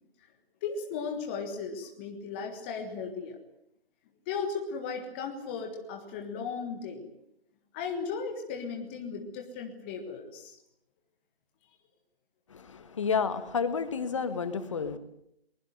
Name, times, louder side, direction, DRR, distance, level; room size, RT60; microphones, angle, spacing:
voice 1, 0.6-3.4 4.3-7.1 7.7-10.6, left 5 dB, 10° left, 3 dB, 1.5 m, -36 dB
voice 2, 12.5-15.0, left 6 dB, 30° left, 11 dB, 1.7 m, -30 dB
22.5 x 21.0 x 9.3 m, 0.75 s
figure-of-eight pair, 155°, 32 cm